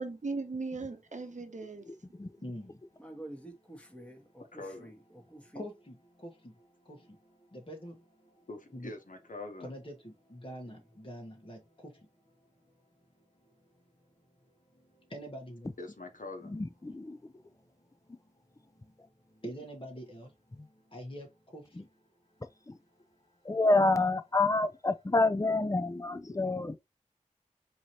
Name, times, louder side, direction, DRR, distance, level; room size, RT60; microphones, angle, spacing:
voice 1, 0.0-2.2, right 3 dB, 70° right, 0.8 m, -38 dB
voice 2, 3.0-4.4 4.8-4.9 5.3-5.6 10.6-10.8, right 1 dB, 10° left, 1.3 m, -48 dB
voice 3, 4.5-4.9 8.5-9.7 15.8-16.6, left 2 dB, 85° left, 0.9 m, -44 dB
voice 4, 7.5-7.9 8.7-8.9 9.6-11.6 15.1-15.7 19.4-20.3 20.9-21.3 21.5-21.6, equal, 40° left, 1.2 m, -43 dB
voice 5, 16.5-17.2 20.6-20.7 23.4-26.8, left 2 dB, 25° left, 0.5 m, -28 dB
4.8 x 2.8 x 2.8 m
wide cardioid pair, 40°, 13 cm